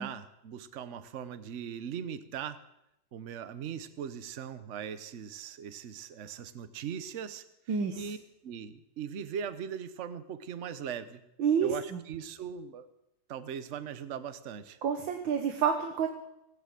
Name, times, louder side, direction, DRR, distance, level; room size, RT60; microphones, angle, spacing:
voice 1, 0.0-2.6 3.1-8.2 8.4-11.2 11.6-12.9 13.3-14.8, right 8 dB, 50° right, 12 dB, 1.0 m, -40 dB
voice 2, 7.7-8.0 11.4-12.0 14.8-16.1, right 7 dB, 85° right, 5 dB, 1.9 m, -28 dB
18.5 x 9.3 x 7.7 m, 0.86 s
omnidirectional pair, 2.1 m